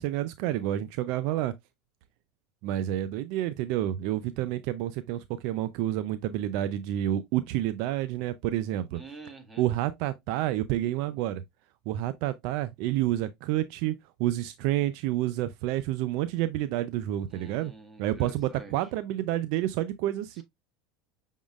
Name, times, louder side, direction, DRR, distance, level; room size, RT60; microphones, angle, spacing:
voice 1, 0.0-1.5 2.6-9.0 9.6-11.4 11.9-13.9 14.2-17.7 18.0-20.4, right 13 dB, 65° right, 0.4 m, -29 dB
voice 2, 8.9-9.7 17.3-18.7, right 3 dB, 15° right, 1.6 m, -47 dB
6.2 x 3.6 x 2.3 m
supercardioid pair, 115°, 0 cm